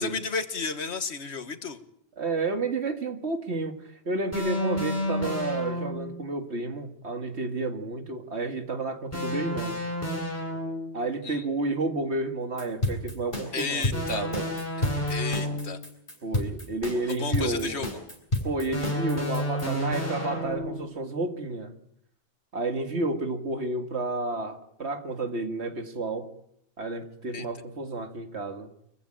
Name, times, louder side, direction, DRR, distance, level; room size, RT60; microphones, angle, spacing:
voice 1, 0.0-1.8 11.2-11.4 13.5-14.3 15.1-15.8 17.1-17.9 27.3-27.5, left 4 dB, 90° left, 10 dB, 1.8 m, -32 dB
voice 2, 2.2-3.7 4.1-9.8 10.9-14.4 16.2-17.8 18.4-21.7 22.5-26.3 26.8-28.7, right 2 dB, 90° right, 7 dB, 2.2 m, -31 dB
sound 1, 4.3-6.1 9.1-11.0 13.9-15.9 18.7-20.9, left 1 dB, 15° left, 4.6 m, -31 dB
sound 2, 12.6-19.7, left 1 dB, 45° left, 7.1 m, -30 dB
24.5 x 15.0 x 8.9 m, 0.75 s
omnidirectional pair, 1.1 m